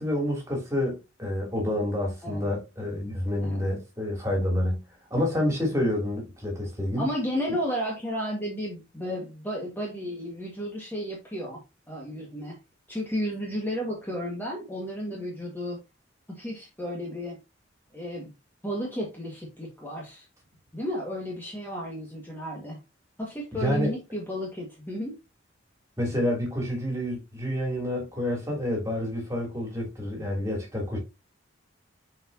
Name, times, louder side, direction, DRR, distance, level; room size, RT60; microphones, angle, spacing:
voice 1, 0.0-4.8 5.1-7.1 23.5-23.9 26.0-31.0, left 1 dB, 15° right, 2.9 m, -28 dB
voice 2, 7.0-11.6 11.9-12.6 12.9-15.8 16.3-17.4 17.9-18.3 18.6-20.3 20.7-22.8 23.2-25.1, equal, 10° left, 1.6 m, -33 dB
7.7 x 4.9 x 2.7 m
head